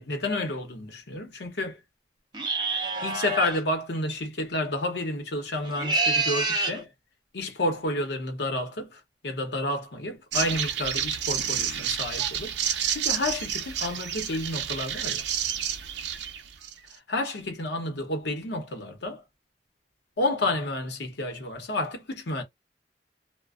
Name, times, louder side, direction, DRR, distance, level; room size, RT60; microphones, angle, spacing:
voice 1, 0.0-1.8 2.7-6.9 7.3-15.3 16.9-19.2 20.2-22.4, left 1 dB, 75° left, 0.9 m, -30 dB
sound 1, 2.3-3.6 5.6-6.8, right 3 dB, 25° right, 0.5 m, -27 dB
sound 2, 10.3-16.9, right 9 dB, 80° right, 0.5 m, -30 dB
2.5 x 2.1 x 2.4 m
head